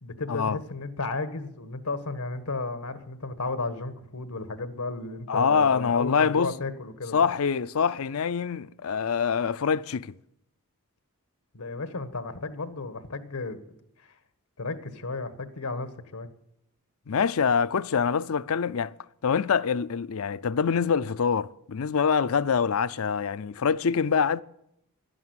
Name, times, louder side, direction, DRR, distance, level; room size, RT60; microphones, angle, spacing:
voice 1, 0.0-7.1 11.5-13.6 14.0-14.1 14.6-16.3, left 3 dB, 85° left, 1.5 m, -33 dB
voice 2, 5.3-6.5 7.1-10.1 17.1-18.9 19.2-24.4, left 6 dB, 65° left, 0.5 m, -25 dB
11.5 x 11.0 x 9.6 m
head